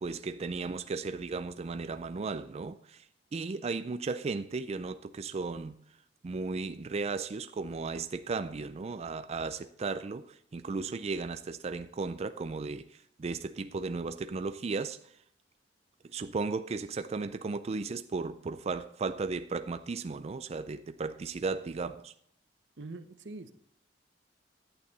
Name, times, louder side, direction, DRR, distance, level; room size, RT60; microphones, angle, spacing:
voice 1, 0.0-5.8 6.2-15.2 16.0-22.1, right 4 dB, 35° right, 0.4 m, -35 dB
voice 2, 22.8-23.5, right 2 dB, 90° right, 0.8 m, -43 dB
11.5 x 8.8 x 4.0 m
head